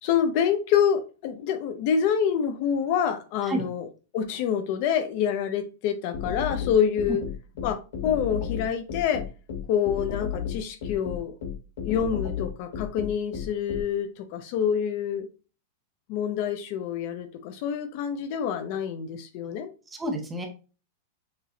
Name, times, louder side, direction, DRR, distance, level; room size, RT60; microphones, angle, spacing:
voice 1, 0.0-3.9 4.1-7.2 7.6-9.2 9.7-11.4 11.8-15.3 16.1-19.7, left 8 dB, 40° left, 0.5 m, -26 dB
sound 1, 6.1-13.8, left 7 dB, 65° left, 1.9 m, -32 dB
voice 2, 19.9-20.5, right 1 dB, 10° right, 0.8 m, -30 dB
6.5 x 3.0 x 2.7 m
supercardioid pair, 170°, 0 cm